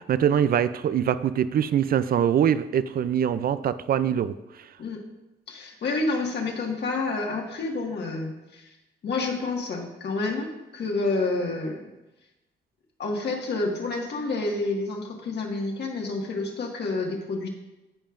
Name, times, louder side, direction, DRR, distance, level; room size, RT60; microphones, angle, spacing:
voice 1, 0.0-4.3, right 9 dB, 50° right, 14 dB, 0.5 m, -23 dB
voice 2, 5.5-8.7 9.0-11.9 13.0-17.5, left 3 dB, 60° left, 0 dB, 1.9 m, -29 dB
15.5 x 5.5 x 2.6 m, 1.0 s
cardioid pair, 90°, 20 cm